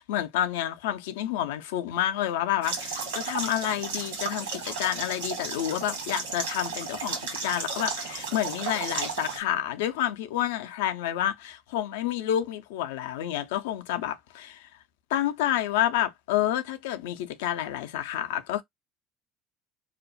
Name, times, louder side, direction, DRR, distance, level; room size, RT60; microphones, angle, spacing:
voice 1, 0.0-14.7 15.1-18.6, left 11 dB, 75° left, 0.4 m, -29 dB
sound 1, 2.6-9.4, right 4 dB, 80° right, 1.1 m, -34 dB
2.4 x 2.0 x 2.6 m
hypercardioid pair, 65°, 0 cm